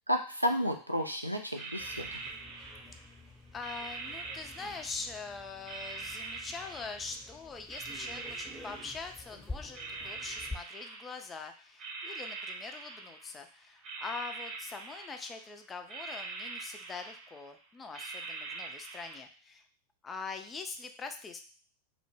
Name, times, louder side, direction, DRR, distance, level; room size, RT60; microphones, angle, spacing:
voice 1, 0.1-2.1, equal, 90° right, 3 dB, 0.3 m, -31 dB
sound 1, 1.0-1.2 1.5-3.2 3.6-5.2 5.6-7.3 7.7-9.4 9.7-11.4 11.8-13.4 13.7-15.5 15.9-17.5 17.9-19.2, right 3 dB, 30° right, 0.5 m, -43 dB
sound 2, 1.8-10.6, left 2 dB, 5° left, 0.7 m, -49 dB
voice 2, 3.5-19.6 20.0-21.4, left 4 dB, 20° left, 6 dB, 0.3 m, -43 dB
2.1 x 2.0 x 3.1 m, 0.39 s
figure-of-eight pair, 90°, 0 cm